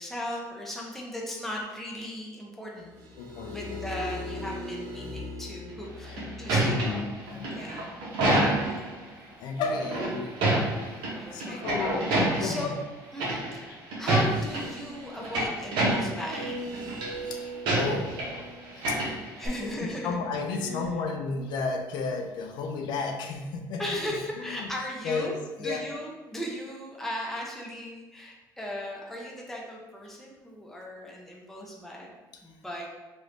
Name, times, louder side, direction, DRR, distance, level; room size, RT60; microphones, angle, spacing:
voice 1, 0.0-2.9 3.5-7.0 7.5-8.0 11.1-11.8 12.4-12.8 13.1-16.7 19.4-20.2 20.6-20.8 23.8-32.1 32.4-32.9, left 1 dB, 5° left, -2 dB, 0.6 m, -37 dB
sound 1, 2.8-8.4 14.2-18.8 20.4-20.8, equal, 55° right, 0.7 m, -41 dB
voice 2, 3.2-3.8 6.5-7.5 8.2-8.4 9.4-12.8 17.1-18.2 18.8-19.0 19.6-23.8 24.6-24.7 25.0-25.3 25.6-25.9, left 4 dB, 70° left, 4 dB, 0.5 m, -33 dB
sound 2, 5.8-8.9 9.8-11.1 11.4-12.6 13.2-13.6 13.9-14.6 15.0-16.5 16.7-17.1 17.7-18.4 18.7-19.5, right 1 dB, 80° right, 1.1 m, -27 dB
3.1 x 2.6 x 3.2 m, 1.1 s
cardioid pair, 120°, 8 cm